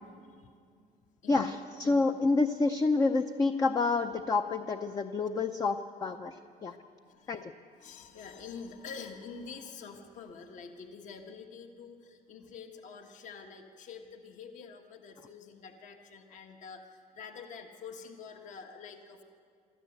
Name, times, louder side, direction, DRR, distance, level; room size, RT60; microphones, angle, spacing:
voice 1, 1.3-6.3 6.6-6.7 7.3-7.5, left 3 dB, 20° left, 7 dB, 0.6 m, -28 dB
voice 2, 7.0-7.4 7.7-19.2, left 5 dB, 50° left, 4 dB, 1.6 m, -47 dB
24.0 x 14.0 x 8.0 m, 2.2 s
cardioid pair, 160°, 16 cm